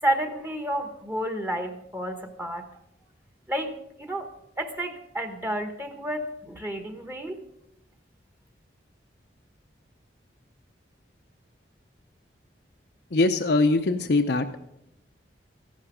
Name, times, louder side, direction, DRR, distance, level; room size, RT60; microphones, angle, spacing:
voice 1, 0.0-2.7 3.5-4.3 4.6-7.4, right 1 dB, 10° right, 7 dB, 1.1 m, -31 dB
voice 2, 13.1-14.6, left 2 dB, 65° left, 6 dB, 0.7 m, -22 dB
15.0 x 11.5 x 5.1 m, 0.81 s
head